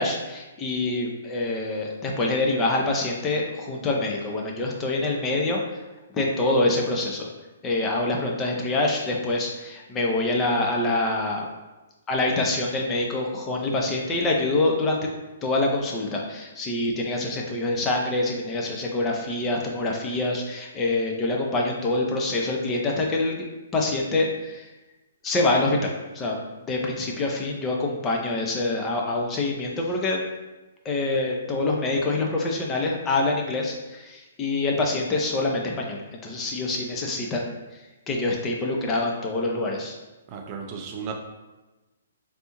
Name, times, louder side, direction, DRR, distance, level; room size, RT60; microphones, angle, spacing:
voice 1, 0.0-5.6 6.1-7.3 7.6-11.5 12.1-15.1 15.4-23.3 23.7-24.7 25.2-26.4 26.7-30.2 30.8-37.6 38.1-40.0, left 2 dB, 20° left, 0 dB, 0.5 m, -25 dB
voice 2, 40.3-41.2, right 6 dB, 35° right, 2 dB, 0.5 m, -34 dB
3.3 x 2.6 x 2.9 m, 1.1 s
hypercardioid pair, 130°, 0 cm